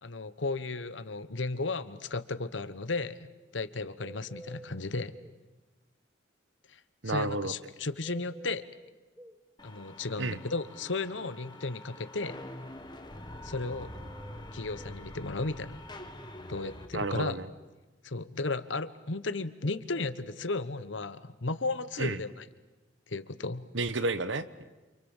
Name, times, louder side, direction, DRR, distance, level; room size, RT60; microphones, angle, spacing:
voice 1, 0.0-5.2 6.7-6.8 7.0-8.6 9.6-12.4 13.4-13.9 14.5-15.8 16.5-17.4 18.0-22.4 23.1-23.7, left 3 dB, 75° left, 13 dB, 1.2 m, -34 dB
sound 1, 4.0-5.4 8.0-9.4 13.6-15.0 19.6-21.0, right 1 dB, 10° right, 1.2 m, -50 dB
voice 2, 7.0-7.5 10.2-10.4 16.9-17.5 22.0-22.2 23.7-24.6, right 3 dB, 80° right, 13 dB, 1.3 m, -31 dB
sound 2, 9.6-16.9, left 1 dB, 25° left, 1.9 m, -45 dB
29.0 x 27.0 x 7.4 m, 1.2 s
head